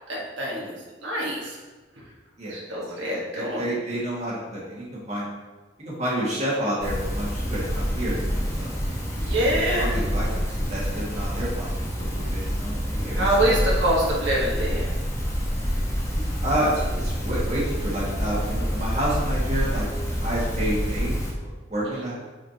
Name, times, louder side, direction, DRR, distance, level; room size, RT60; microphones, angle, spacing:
voice 1, 0.1-0.8 1.0-1.5 2.5-3.6 9.2-9.9 13.1-14.8 21.9-22.0, right 1 dB, 75° right, -5 dB, 1.6 m, -25 dB
voice 2, 2.4-2.8 3.1-5.3 5.8-8.7 9.5-10.3 10.7-13.6 16.1-21.1 21.7-22.2, right 1 dB, 40° right, -6 dB, 2.0 m, -30 dB
sound 1, 6.8-21.3, equal, 15° left, 1.2 m, -27 dB
8.6 x 5.0 x 2.9 m, 1.3 s
head